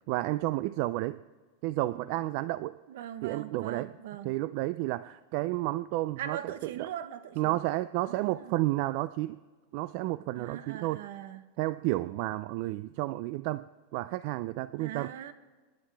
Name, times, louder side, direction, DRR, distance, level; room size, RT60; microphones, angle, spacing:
voice 1, 0.1-1.2 1.6-2.8 3.2-3.9 4.2-6.9 7.4-9.4 9.7-11.0 11.6-13.6 13.9-15.1, right 17 dB, 55° right, 15 dB, 0.4 m, -31 dB
voice 2, 2.9-4.3 6.2-7.6 8.1-8.5 10.4-11.4 14.8-15.3, right 10 dB, 75° right, 11 dB, 1.1 m, -41 dB
25.0 x 10.5 x 3.5 m, 1.3 s
supercardioid pair, 135°, 0 cm